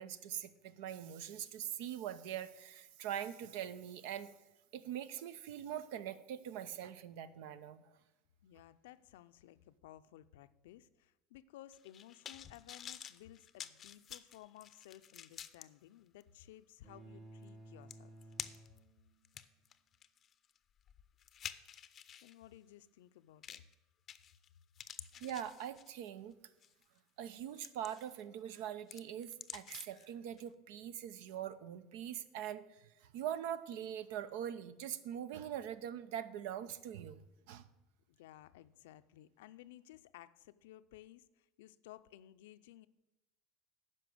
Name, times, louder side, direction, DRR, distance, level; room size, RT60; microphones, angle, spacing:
voice 1, 0.0-4.3 4.7-7.8 25.2-26.4 27.2-37.2 37.5-37.7, right 10 dB, 75° right, 15 dB, 0.7 m, -43 dB
voice 2, 8.4-18.1 22.2-23.6 38.1-42.9, left 13 dB, 85° left, 13 dB, 0.5 m, -57 dB
sound 1, 11.7-15.7 16.2-16.3 17.5-17.6 17.9-18.8 19.2-22.3 23.4-23.7 24.1-24.5 24.8-26.1 26.6-26.8 27.3-28.2 28.5-30.1 30.4-30.5, left 9 dB, 35° left, 0.5 m, -49 dB
sound 2, 16.8-19.4, right 2 dB, 25° right, 3.4 m, -55 dB
9.9 x 5.7 x 7.8 m, 1.0 s
supercardioid pair, 130°, 0 cm